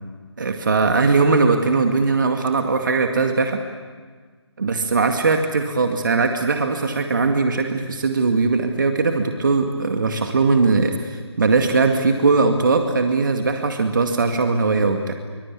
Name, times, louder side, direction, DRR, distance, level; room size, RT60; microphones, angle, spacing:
voice 1, 0.4-3.6 4.6-15.1, right 4 dB, 45° right, 4 dB, 2.1 m, -20 dB
25.5 x 25.0 x 8.5 m, 1.5 s
figure-of-eight pair, 155°, 15 cm